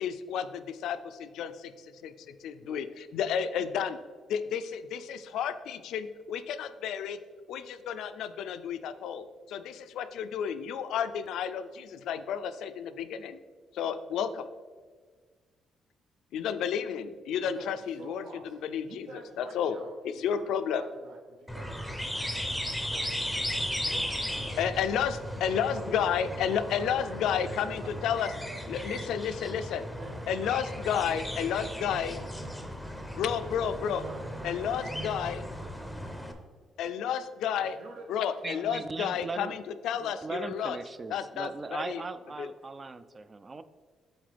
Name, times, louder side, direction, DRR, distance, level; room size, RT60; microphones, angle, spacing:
voice 1, 0.0-4.0 4.3-7.2 7.5-13.4 13.7-14.5 16.3-18.2 18.6-19.1 19.4-19.7 20.2-20.8 24.6-28.3 28.7-29.8 30.3-32.2 33.2-34.0 34.4-35.4 36.8-37.8 38.1-40.8 41.1-42.0 42.4-42.5, left 8 dB, 80° left, 11 dB, 0.3 m, -31 dB
voice 2, 17.4-22.6 22.9-23.2 23.5-24.7 25.3-27.0 27.5-28.2 28.4-29.2 30.0-32.7 33.4-36.3 37.6-38.7 39.0-39.6, right 3 dB, 75° right, 2 dB, 0.6 m, -49 dB
sound 1, 21.5-36.3, equal, ahead, 0.7 m, -36 dB
voice 3, 38.4-39.5 39.9-43.6, right 3 dB, 30° right, 12 dB, 0.3 m, -38 dB
7.9 x 3.7 x 3.3 m, 1.5 s
cardioid pair, 90°, 0 cm